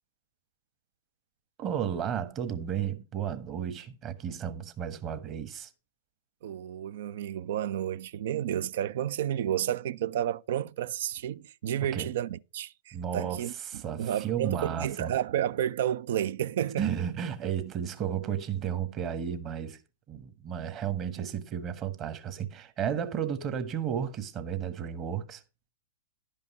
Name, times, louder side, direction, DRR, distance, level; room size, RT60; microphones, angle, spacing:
voice 1, 1.6-5.7 11.9-12.1 12.9-15.1 16.8-19.8 20.1-25.4, right 8 dB, 30° right, 1.3 m, -33 dB
voice 2, 6.4-13.5 14.0-16.9, right 10 dB, 60° right, 0.4 m, -31 dB
11.0 x 5.4 x 5.5 m
figure-of-eight pair, 105°, 0 cm